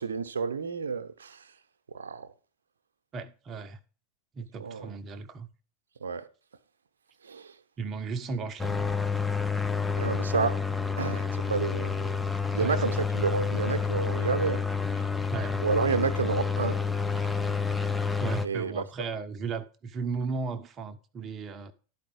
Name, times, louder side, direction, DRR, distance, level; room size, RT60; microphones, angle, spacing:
voice 1, 0.0-1.4 1.9-2.3 4.6-4.9 6.0-6.3 7.2-7.5 10.0-10.6 11.0-11.9 12.5-14.6 15.6-16.8 17.2-17.3 18.4-18.8, right 5 dB, 70° right, 0.9 m, -30 dB
voice 2, 3.1-3.8 4.3-5.5 7.8-8.8 12.6-12.8 15.3-15.7 18.2-21.7, right 5 dB, 30° right, 0.8 m, -35 dB
sound 1, 8.6-18.5, left 5 dB, 5° left, 0.5 m, -29 dB
12.5 x 5.0 x 4.7 m
figure-of-eight pair, 90°, 0 cm